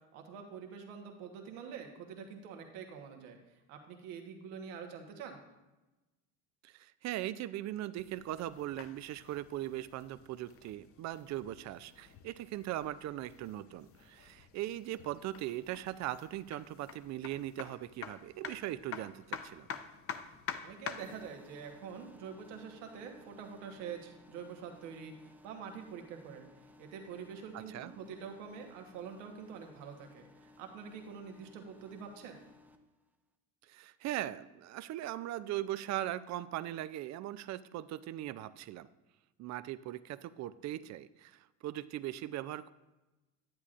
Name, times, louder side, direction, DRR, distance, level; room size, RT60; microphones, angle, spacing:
voice 1, 0.1-3.4 3.7-5.4 20.6-26.5 26.8-32.4, right 6 dB, 85° right, 4 dB, 1.3 m, -46 dB
voice 2, 6.6-19.7 27.5-27.9 33.7-38.9 39.4-42.7, right 14 dB, 50° right, 16 dB, 0.4 m, -39 dB
sound 1, 7.9-21.2, left 7 dB, 40° left, 0.6 m, -48 dB
sound 2, 21.0-32.8, left 2 dB, 5° right, 0.6 m, -59 dB
10.5 x 8.3 x 2.5 m, 1.1 s
supercardioid pair, 85°, 36 cm